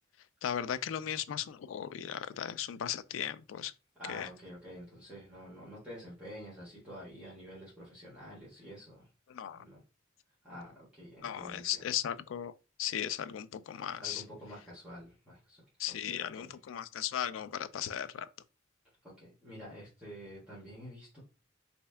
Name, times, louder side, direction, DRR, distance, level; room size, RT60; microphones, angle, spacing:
voice 1, 0.4-3.7 4.1-4.3 9.3-9.6 11.2-12.5 12.8-14.2 15.8-18.3, left 9 dB, 90° left, 0.3 m, -36 dB
voice 2, 4.0-9.1 9.5-9.8 10.4-11.9 14.0-15.6 16.0-16.6 18.8-21.2, equal, 5° right, 1.4 m, -48 dB
3.2 x 2.7 x 3.3 m
head